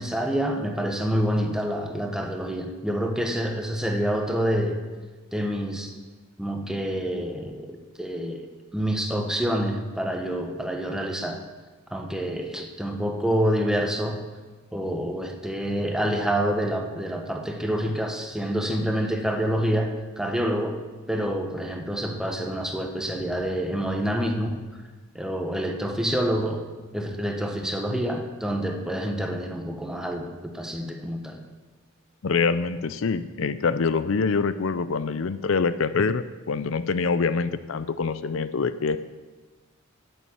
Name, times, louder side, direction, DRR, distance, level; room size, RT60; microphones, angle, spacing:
voice 1, 0.0-4.8 5.3-5.9 6.4-11.4 11.9-14.2 14.7-20.8 21.1-24.6 25.1-26.7 26.9-31.4, equal, 5° right, 3 dB, 1.2 m, -27 dB
voice 2, 32.2-39.0, left 4 dB, 65° left, 14 dB, 0.5 m, -25 dB
11.0 x 9.2 x 7.1 m, 1.3 s
head